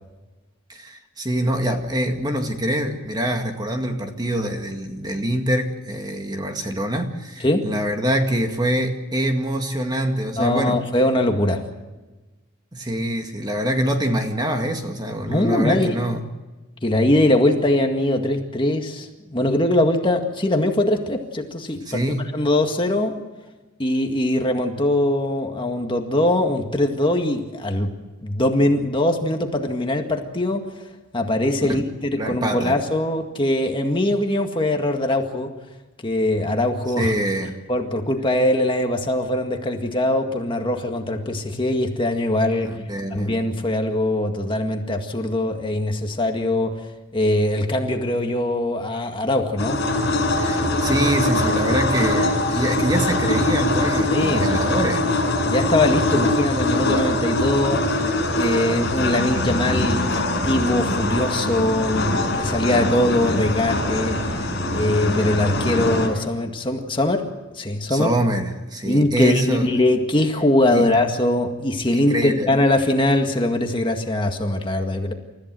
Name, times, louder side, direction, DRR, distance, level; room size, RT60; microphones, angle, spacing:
voice 1, 0.7-10.9 12.7-16.2 21.9-22.3 31.6-31.8 32.1-32.8 37.0-37.6 42.6-43.3 50.3-55.1 67.9-69.7 70.7-70.9 72.1-72.5, right 1 dB, 20° right, 4 dB, 1.9 m, -25 dB
voice 2, 10.4-11.6 15.2-16.0 16.8-22.0 22.3-23.2 23.8-27.9 28.2-30.7 31.1-35.5 36.0-37.1 37.7-42.7 43.1-46.7 47.1-49.8 54.1-54.5 55.5-58.0 58.3-64.4 64.7-67.3 67.6-68.1 68.9-75.1, left 1 dB, 25° left, 4 dB, 1.9 m, -21 dB
sound 1, 49.6-66.1, left 1 dB, 55° left, 7.6 m, -22 dB
29.0 x 14.5 x 7.6 m, 1.2 s
head